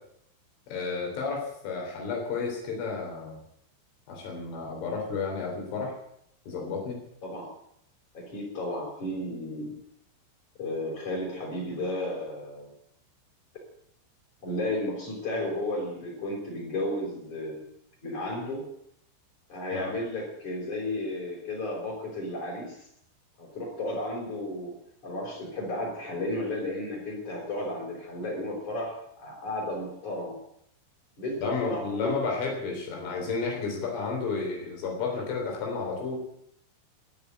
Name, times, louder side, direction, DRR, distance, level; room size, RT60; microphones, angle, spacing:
voice 1, 0.7-3.4 4.1-6.0 6.5-7.0 19.7-19.9 31.4-36.2, left 4 dB, 90° left, 0 dB, 6.3 m, -32 dB
voice 2, 8.1-9.8 10.6-12.7 14.4-17.6 18.0-18.7 19.5-22.9 23.4-24.8 25.0-30.4 31.2-32.4 35.1-35.2, left 1 dB, 40° left, -4 dB, 6.3 m, -33 dB
18.5 x 7.5 x 9.6 m, 0.72 s
omnidirectional pair, 5.4 m